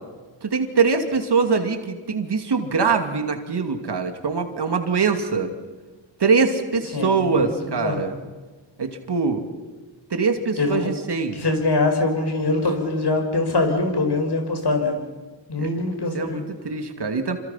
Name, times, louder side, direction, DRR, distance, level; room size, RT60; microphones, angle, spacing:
voice 1, 0.4-5.5 6.2-8.2 8.8-9.4 10.1-11.4 15.6-15.7 16.1-17.4, right 5 dB, 55° right, 6 dB, 2.7 m, -23 dB
voice 2, 6.9-8.0 10.6-10.9 11.3-14.9 15.5-16.4, left 2 dB, 55° left, 4 dB, 5.9 m, -23 dB
27.5 x 26.0 x 5.9 m, 1.3 s
cardioid pair, 65°, 47 cm